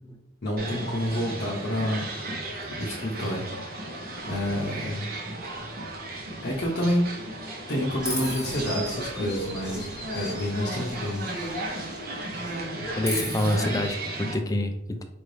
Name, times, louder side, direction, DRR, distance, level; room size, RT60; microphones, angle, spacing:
voice 1, 0.4-2.2 2.7-3.5 4.3-5.1 6.4-7.1 7.7-9.9 10.1-11.3, equal, 55° left, -5 dB, 0.7 m, -28 dB
sound 1, 0.6-14.3, right 1 dB, 50° right, 0.8 m, -35 dB
Chirp tweet, 8.0-12.0 12.3-13.5, equal, 5° right, 1.1 m, -37 dB
voice 2, 13.0-15.0, left 1 dB, 15° left, 6 dB, 0.4 m, -27 dB
4.6 x 2.6 x 3.2 m, 0.82 s
head